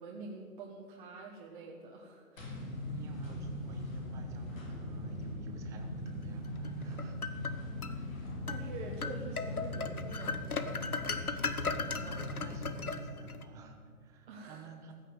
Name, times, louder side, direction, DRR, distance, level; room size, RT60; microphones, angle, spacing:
voice 1, 0.0-2.7 8.5-10.8 11.1-11.5 11.8-12.5 14.3-14.7, right 3 dB, 35° right, -1 dB, 1.5 m, -47 dB
sound 1, 2.4-12.9, left 1 dB, 65° left, 4.0 m, -40 dB
voice 2, 2.7-7.3 7.9-8.2 12.2-14.9, right 3 dB, 5° right, 4 dB, 0.6 m, -51 dB
sound 2, 6.6-8.0 8.5-8.6 9.0-13.4, left 4 dB, 85° left, 1.0 m, -37 dB
14.5 x 6.5 x 9.1 m, 2.2 s
figure-of-eight pair, 125°, 43 cm